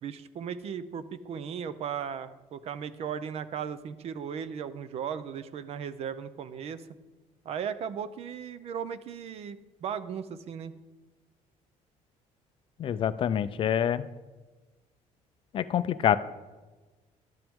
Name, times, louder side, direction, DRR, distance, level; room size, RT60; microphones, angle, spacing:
voice 1, 0.0-6.8 7.4-10.7, right 7 dB, 50° right, 14 dB, 0.5 m, -36 dB
voice 2, 12.8-14.1 15.5-16.2, left 9 dB, 40° left, 14 dB, 0.4 m, -26 dB
11.5 x 8.9 x 3.6 m, 1.2 s
cardioid pair, 150°, 13 cm